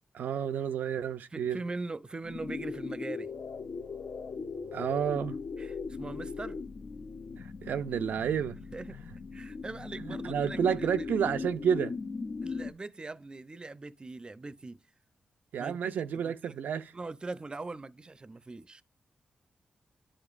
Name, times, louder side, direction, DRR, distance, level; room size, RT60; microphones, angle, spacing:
voice 1, 0.1-1.6 4.7-5.4 7.4-8.6 10.0-11.9 15.5-16.9, right 8 dB, 90° right, 0.4 m, -30 dB
voice 2, 1.3-3.3 5.6-6.6 8.7-9.0 9.3-11.3 12.4-14.8 15.6-16.6 16.9-18.8, right 3 dB, 30° right, 0.5 m, -41 dB
sound 1, 2.2-12.7, left 4 dB, 60° left, 0.6 m, -39 dB
10.0 x 5.0 x 2.4 m
cardioid pair, 65°, 3 cm